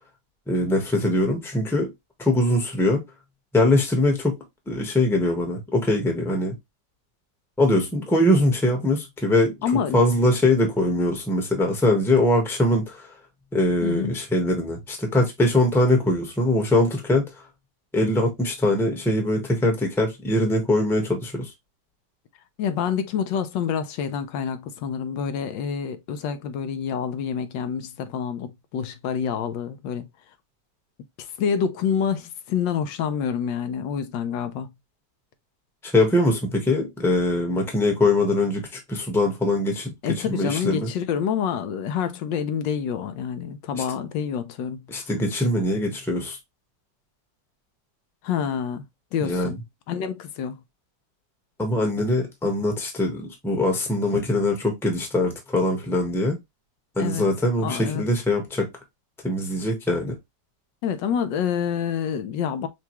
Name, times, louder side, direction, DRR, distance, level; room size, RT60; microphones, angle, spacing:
voice 1, 0.5-1.9 2.2-3.0 3.5-4.4 4.7-6.5 7.6-13.1 13.5-17.3 17.9-21.5 35.8-40.9 43.7-43.8 44.9-46.4 49.2-49.6 51.6-56.4 57.0-58.7 59.2-60.2, left 1 dB, ahead, 0.8 m, -22 dB
voice 2, 9.6-10.0 13.8-14.1 22.6-30.1 31.2-34.7 40.0-44.8 48.2-48.9 49.1-49.6 49.9-50.6 57.0-57.2 57.6-58.1 60.8-62.7, left 7 dB, 80° left, 1.3 m, -27 dB
5.8 x 2.3 x 2.9 m
omnidirectional pair, 2.0 m